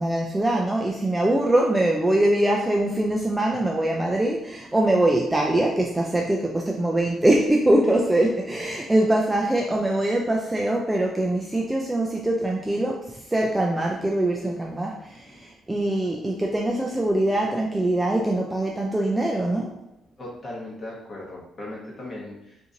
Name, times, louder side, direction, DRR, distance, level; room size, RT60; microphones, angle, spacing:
voice 1, 0.0-19.7, right 1 dB, 10° right, -1 dB, 0.3 m, -23 dB
voice 2, 20.2-22.7, left 1 dB, 25° left, -4 dB, 1.0 m, -38 dB
2.9 x 2.6 x 3.7 m, 0.84 s
cardioid pair, 155°, 0 cm